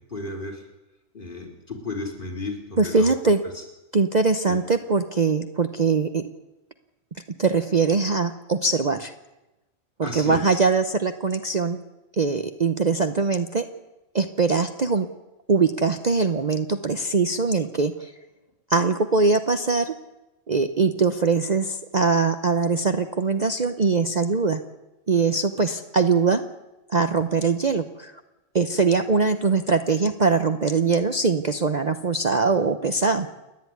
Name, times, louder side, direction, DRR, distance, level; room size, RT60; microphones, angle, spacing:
voice 1, 0.1-0.7 1.1-3.1 3.5-3.6 4.5-4.6 10.0-10.5, left 2 dB, 40° left, 2 dB, 3.9 m, -33 dB
voice 2, 2.8-3.4 3.9-6.3 7.4-9.1 10.0-11.8 12.1-13.7 14.1-15.1 15.5-18.1 18.7-19.9 20.5-24.6 25.1-26.4 26.9-28.2 28.5-33.3, right 4 dB, 40° right, 8 dB, 0.9 m, -22 dB
29.0 x 10.5 x 9.5 m, 1.0 s
omnidirectional pair, 1.3 m